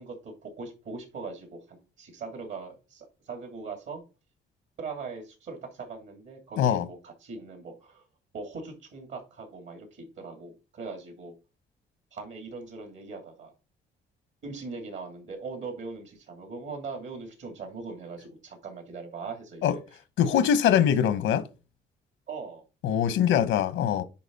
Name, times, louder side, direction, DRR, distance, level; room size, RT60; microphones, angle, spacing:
voice 1, 0.0-4.0 4.8-8.0 8.3-11.3 12.1-13.5 14.4-19.8 22.3-22.6, right 4 dB, 70° right, 3.0 m, -40 dB
voice 2, 6.6-6.9 19.6-19.8 20.2-21.4 22.8-24.0, left 9 dB, 90° left, 1.0 m, -23 dB
9.9 x 4.1 x 4.1 m
cardioid pair, 90°, 20 cm